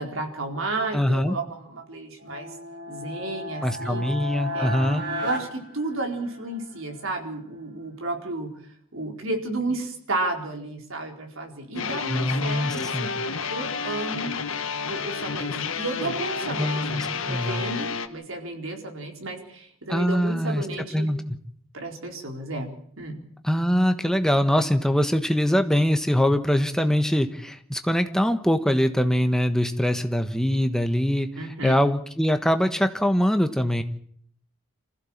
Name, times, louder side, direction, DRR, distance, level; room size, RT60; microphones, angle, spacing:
voice 1, 0.0-2.5 2.9-4.1 4.5-4.7 5.2-8.5 8.9-13.2 13.5-14.3 14.8-21.1 21.7-22.7 23.0-23.2 31.4-31.7, right 2 dB, 70° right, 2 dB, 4.5 m, -32 dB
voice 2, 0.9-1.3 3.6-5.0 12.1-13.1 16.6-17.6 19.9-20.6 20.9-21.2 23.4-33.8, equal, 5° left, 7 dB, 1.3 m, -23 dB
sound 1, 2.2-6.6, equal, 50° right, 4.5 m, -34 dB
sound 2, 11.8-18.1, left 5 dB, 70° left, 1.5 m, -30 dB
26.5 x 15.5 x 7.4 m, 0.63 s
head